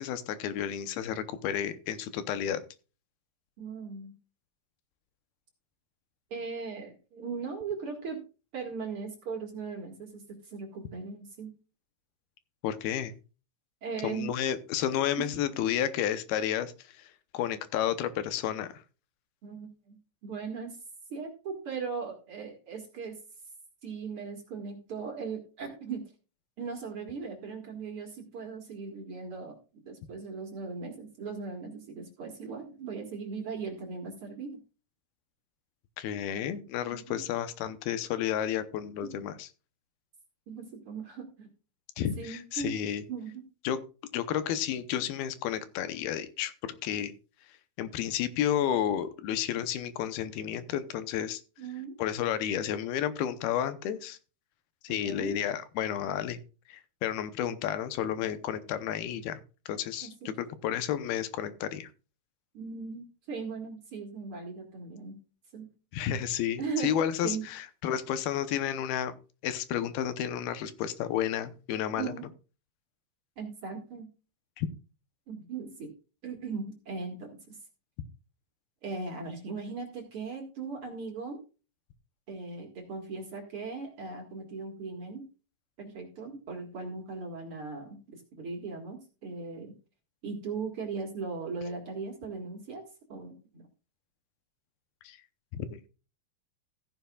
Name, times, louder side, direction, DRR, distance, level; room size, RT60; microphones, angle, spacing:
voice 1, 0.0-2.6 12.6-13.1 14.0-18.8 36.0-39.5 42.0-43.0 43.6-43.8 44.1-47.1 47.8-51.4 52.0-54.2 54.8-56.4 56.7-59.4 59.7-61.9 65.9-69.2 69.4-72.1 74.6-74.7 95.0-95.2 95.5-95.8, left 10 dB, 85° left, 12 dB, 2.8 m, -31 dB
voice 2, 3.6-4.1 6.3-8.2 8.5-11.5 13.8-14.3 15.2-15.3 19.4-20.0 20.2-20.8 21.1-23.2 23.8-26.0 26.6-29.6 29.9-34.6 36.9-37.2 40.5-41.5 42.2-42.8 43.1-43.4 51.6-52.0 54.9-55.4 60.0-60.3 62.5-65.2 65.5-65.7 66.6-66.9 67.2-67.4 72.0-72.3 73.4-74.1 75.3-75.9 76.2-77.6 78.8-81.4 82.3-85.2 85.8-89.7 90.2-92.8 93.1-93.7, right 5 dB, 45° right, 2 dB, 2.4 m, -38 dB
15.0 x 10.5 x 2.4 m, 0.34 s
omnidirectional pair, 4.3 m